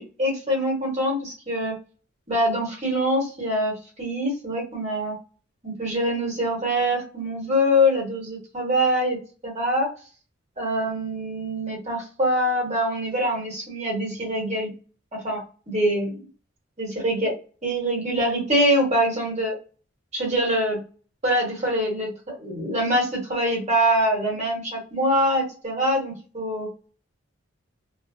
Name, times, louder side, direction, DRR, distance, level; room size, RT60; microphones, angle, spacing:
voice 1, 0.0-1.7 2.3-3.7 4.0-5.1 5.6-9.2 9.4-9.9 10.6-14.7 15.1-15.4 15.7-16.2 16.8-17.3 17.6-19.5 20.1-20.8 21.2-26.7, equal, 30° right, -2 dB, 1.1 m, -24 dB
2.5 x 2.0 x 2.5 m, 0.36 s
head